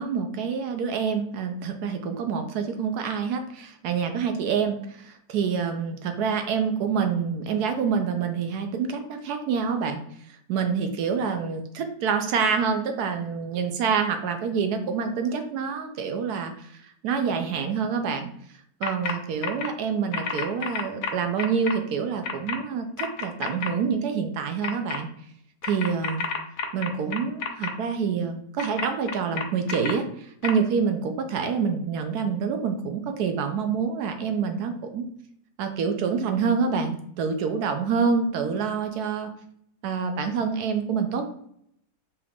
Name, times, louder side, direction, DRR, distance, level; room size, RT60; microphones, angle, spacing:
voice 1, 0.0-10.0 10.5-16.5 17.0-18.3 18.8-25.1 25.6-26.3 26.7-35.1 35.6-39.3 39.8-41.3, right 6 dB, 70° right, 6 dB, 1.0 m, -27 dB
sound 1, 18.8-19.1 19.4-19.7 20.1-21.7 22.2-22.6 23.0-23.7 24.6-25.0 25.6-27.7 28.6-29.9 30.4-30.5, left 6 dB, 75° left, 0.6 m, -30 dB
4.7 x 2.4 x 3.4 m, 0.68 s
omnidirectional pair, 1.9 m